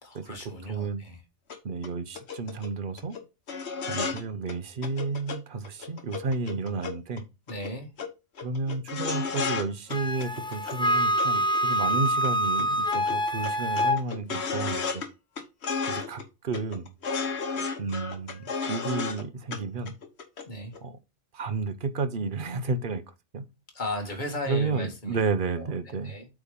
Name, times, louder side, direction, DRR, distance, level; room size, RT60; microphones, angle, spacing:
voice 1, 0.0-1.2 7.5-7.9 20.5-20.7 23.7-25.2 25.6-26.3, left 1 dB, 40° left, 2.1 m, -36 dB
voice 2, 0.7-1.0 1.6-3.2 3.8-7.2 8.4-15.0 15.9-16.9 17.8-19.9 20.8-21.0 21.3-23.0 23.3-23.4 24.5-26.2, right 4 dB, 50° right, 1.0 m, -31 dB
sound 1, 1.5-1.6 1.8-1.9 2.1-2.7 3.0-3.2 3.5-4.2 4.5-4.6 4.8-5.4 5.6-7.2 7.5-7.7 8.0-8.1 8.4-9.6 9.9-10.8 11.2-12.3 12.6-12.7 12.9-15.1 15.4-16.2 16.5-19.2 19.5-19.6 19.9-20.4 20.7-20.8, left 5 dB, 65° left, 1.4 m, -33 dB
Wind instrument woodwind instrument, 9.9-14.0, equal, 5° left, 0.4 m, -26 dB
8.4 x 3.5 x 5.4 m
omnidirectional pair, 1.2 m